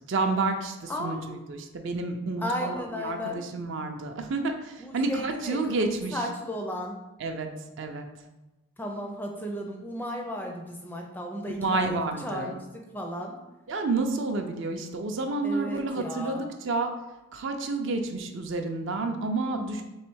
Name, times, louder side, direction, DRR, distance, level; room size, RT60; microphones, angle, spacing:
voice 1, 0.1-6.2 7.2-7.5 7.8-8.1 11.5-12.6 13.7-16.9 17.3-19.8, right 3 dB, 55° right, 5 dB, 0.4 m, -30 dB
voice 2, 0.9-1.4 2.4-3.4 4.8-5.8 6.1-7.0 8.8-12.5 12.9-13.3 15.4-16.4, equal, 10° left, 1 dB, 0.4 m, -34 dB
3.3 x 3.1 x 4.6 m, 1.1 s
head